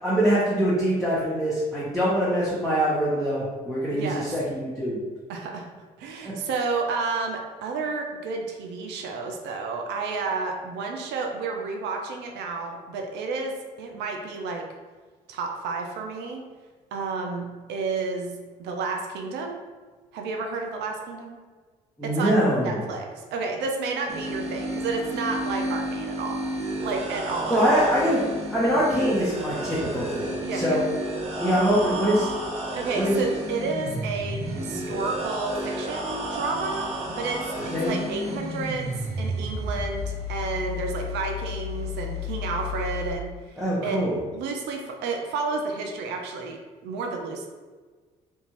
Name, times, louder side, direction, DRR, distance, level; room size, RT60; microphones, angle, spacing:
voice 1, 0.0-5.0 22.0-22.8 27.5-28.2 28.5-30.8 31.4-32.3 32.9-33.2 37.7-37.9 43.6-44.2, equal, ahead, -9 dB, 0.9 m, -23 dB
voice 2, 3.9-4.3 5.3-5.7 6.0-14.6 15.3-16.4 16.9-19.6 20.1-21.4 22.0-27.8 30.4-30.8 32.7-36.9 37.2-37.4 37.6-44.0 44.3-47.5, right 4 dB, 65° right, 2 dB, 0.4 m, -31 dB
sound 1, 24.1-43.1, equal, 35° right, 0.9 m, -31 dB
2.5 x 2.3 x 3.0 m, 1.4 s
hypercardioid pair, 45°, 19 cm